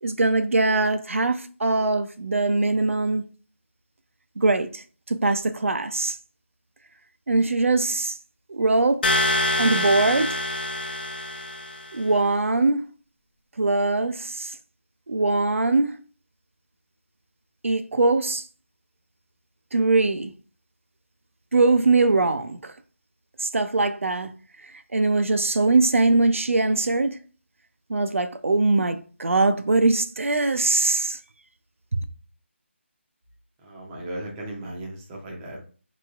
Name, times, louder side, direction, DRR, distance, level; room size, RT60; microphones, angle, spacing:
voice 1, 0.0-3.2 4.4-6.2 7.3-8.2 8.5-9.1 9.6-10.4 11.9-12.8 13.6-14.6 15.1-16.0 17.6-18.4 19.7-20.3 21.5-22.7 23.4-24.3 24.7-27.2 27.9-31.2, right 3 dB, 85° right, 0.4 m, -22 dB
sound 1, 9.0-11.9, left 1 dB, 45° left, 0.7 m, -25 dB
voice 2, 33.6-35.6, right 1 dB, 10° right, 0.5 m, -36 dB
4.0 x 3.0 x 2.3 m
figure-of-eight pair, 165°, 7 cm